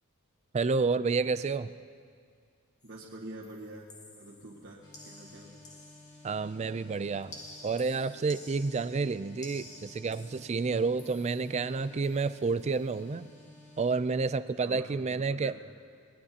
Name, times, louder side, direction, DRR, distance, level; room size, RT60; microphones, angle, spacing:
voice 1, 0.5-1.7 6.2-7.4 7.6-13.3 13.8-15.5, right 4 dB, 30° right, 13 dB, 0.4 m, -30 dB
sound 1, 2.8-3.1 3.4-6.5 7.3-11.7 12.0-12.3 12.6-12.9, left 2 dB, 35° left, 1.8 m, -52 dB
voice 2, 2.8-5.5 14.5-15.5, right 1 dB, 50° right, -5 dB, 1.6 m, -46 dB
sound 2, 4.8-14.0, left 2 dB, 20° left, 2.0 m, -54 dB
22.5 x 19.0 x 2.9 m, 2.1 s
head